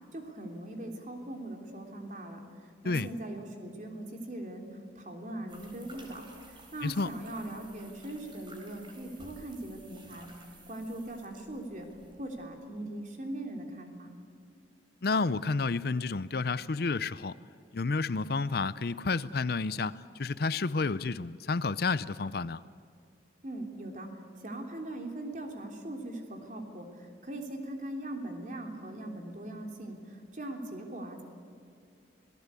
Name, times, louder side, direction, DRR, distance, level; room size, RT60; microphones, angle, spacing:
voice 1, 0.1-2.4 2.8-4.7 5.0-6.2 6.7-10.3 10.7-11.9 12.2-14.1 23.4-24.1 24.4-31.2, right 1 dB, 45° right, 3 dB, 3.3 m, -40 dB
sound 1, 5.5-12.4, right 2 dB, 25° right, 4.2 m, -53 dB
voice 2, 15.0-17.3 17.7-22.6, left 4 dB, 60° left, 17 dB, 0.6 m, -30 dB
27.0 x 18.5 x 8.3 m, 2.4 s
head